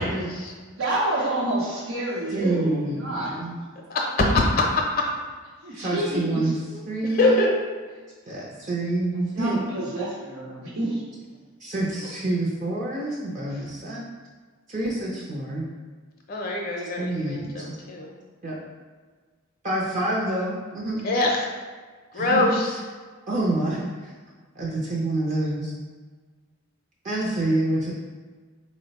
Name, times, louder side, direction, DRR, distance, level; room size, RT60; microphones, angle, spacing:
voice 1, 0.8-3.4 5.6-6.6 9.3-11.0 12.0-12.1, right 1 dB, 90° right, -5 dB, 0.8 m, -28 dB
voice 2, 2.3-3.6 5.7-6.5 6.9-7.4 8.3-9.6 11.6-14.1 14.7-15.6 17.0-17.8 18.4-18.5 19.6-21.1 22.1-22.6 23.3-24.1 24.6-25.7 27.0-27.9, right 2 dB, 35° right, -5 dB, 0.5 m, -27 dB
voice 3, 4.3-4.6 5.7-5.8 6.7-6.8 7.1-7.5 16.3-18.2 21.0-21.5 22.1-22.8, left 2 dB, 45° left, 0 dB, 0.5 m, -24 dB
3.9 x 2.1 x 4.0 m, 1.4 s
head